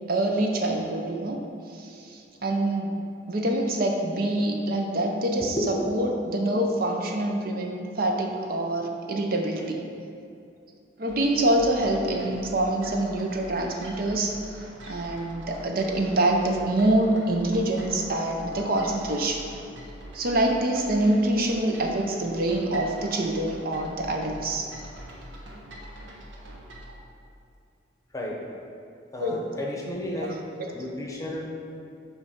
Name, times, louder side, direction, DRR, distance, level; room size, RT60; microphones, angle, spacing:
voice 1, 0.1-1.4 1.7-3.0 3.3-9.9 11.0-14.4 14.9-19.4 20.1-24.7 29.2-29.5 30.2-30.3 30.6-30.7, right 1 dB, 50° right, 2 dB, 0.6 m, -25 dB
sound 1, 11.1-26.9, right 1 dB, 80° right, 1.1 m, -44 dB
voice 2, 29.1-30.4 30.7-31.4, left 1 dB, 15° left, -2 dB, 0.8 m, -32 dB
8.1 x 3.2 x 5.6 m, 2.5 s
head